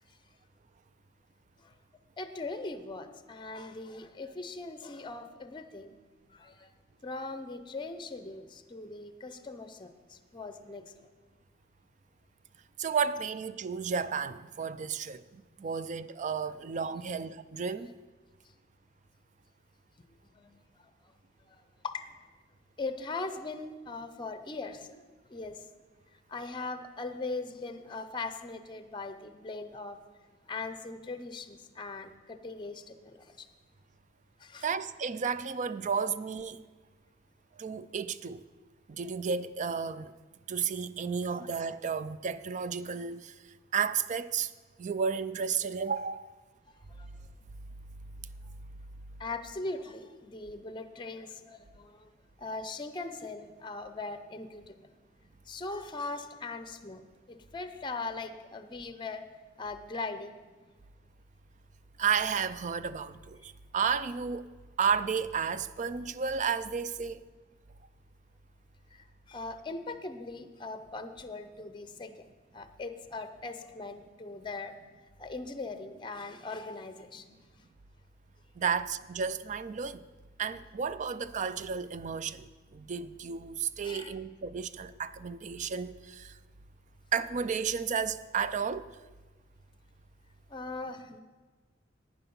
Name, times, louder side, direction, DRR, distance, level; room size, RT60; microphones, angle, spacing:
voice 1, 2.2-5.9 6.3-6.7 7.0-11.1 20.3-21.1 21.5-22.1 22.8-25.6 26.3-30.0 30.5-33.5 34.4-34.7 46.9-47.2 49.2-52.1 52.4-54.9 55.5-57.0 57.3-59.2 59.6-60.4 68.9-72.3 72.5-74.7 75.2-77.4 83.8-84.1 90.5-91.2, left 3 dB, 25° left, 0.6 m, -40 dB
voice 2, 12.8-17.9 34.6-36.6 37.6-38.4 38.9-40.1 40.5-44.5 44.8-46.3 62.0-64.5 64.8-67.2 78.6-80.1 80.4-86.4 87.1-88.9, right 6 dB, 40° right, 0.4 m, -32 dB
11.5 x 9.2 x 5.4 m
head